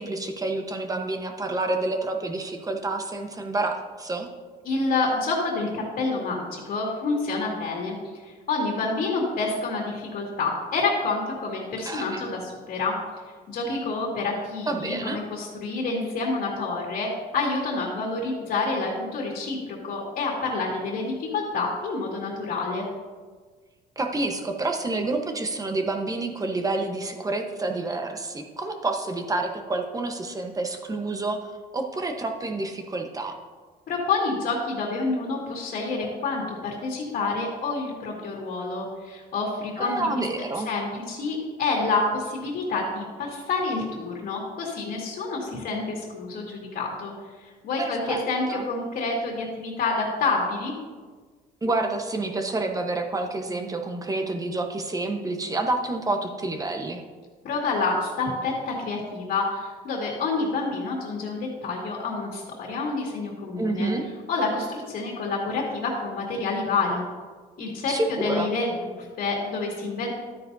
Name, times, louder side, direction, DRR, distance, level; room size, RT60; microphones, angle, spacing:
voice 1, 0.0-4.3 11.8-12.3 14.7-15.2 24.0-31.5 31.7-33.4 39.8-40.7 47.8-48.2 48.5-48.7 51.6-57.0 63.6-64.1 67.9-68.5, right 2 dB, 20° right, 4 dB, 1.1 m, -28 dB
voice 2, 4.6-8.0 8.2-12.9 13.5-22.9 33.9-40.0 40.7-47.1 47.4-50.7 57.4-63.9 64.3-67.0 67.6-70.1, left 3 dB, 60° left, -2 dB, 2.2 m, -28 dB
12.0 x 9.3 x 2.7 m, 1.5 s
cardioid pair, 110°, 17 cm